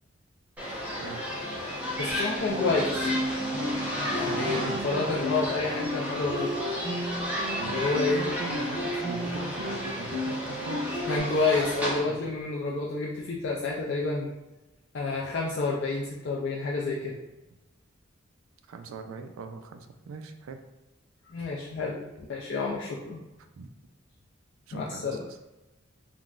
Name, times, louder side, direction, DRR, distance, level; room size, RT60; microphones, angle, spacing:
sound 1, 0.6-12.0, equal, 5° right, 0.7 m, -33 dB
voice 1, 2.0-3.1 4.1-6.5 7.7-8.3 11.1-14.3 14.9-17.2 21.3-23.2 24.7-25.2, left 3 dB, 55° left, -3 dB, 0.3 m, -29 dB
sound 2, 2.5-11.2, left 1 dB, 35° left, 0.8 m, -34 dB
voice 2, 4.3-5.7 7.6-11.1 12.0-12.3 18.7-20.6 23.5-23.7 24.7-25.4, right 4 dB, 85° right, 7 dB, 0.3 m, -40 dB
3.8 x 2.1 x 2.4 m, 1.1 s
head